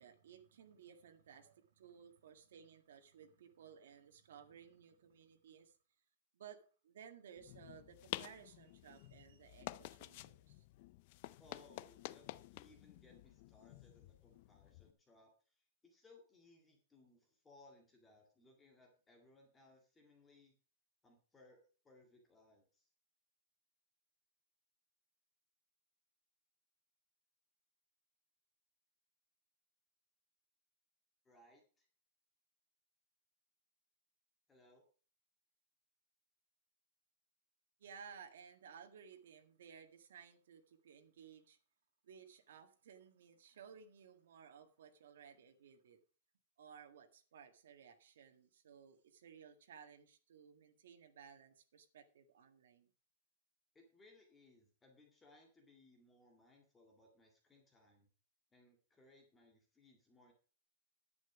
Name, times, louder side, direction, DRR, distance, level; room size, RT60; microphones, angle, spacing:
voice 1, 0.0-5.7 6.3-10.6 37.8-41.6 42.0-46.0 46.6-52.9, right 7 dB, 75° right, 5 dB, 1.8 m, -58 dB
sound 1, 7.4-14.9, left 17 dB, 40° left, 0.4 m, -51 dB
voice 2, 11.4-20.6 21.0-22.9 31.3-31.9 34.5-34.8 53.7-58.1 58.5-60.3, left 2 dB, 10° left, 2 dB, 2.0 m, -66 dB
10.5 x 9.2 x 4.9 m, 0.38 s
supercardioid pair, 170°, 0 cm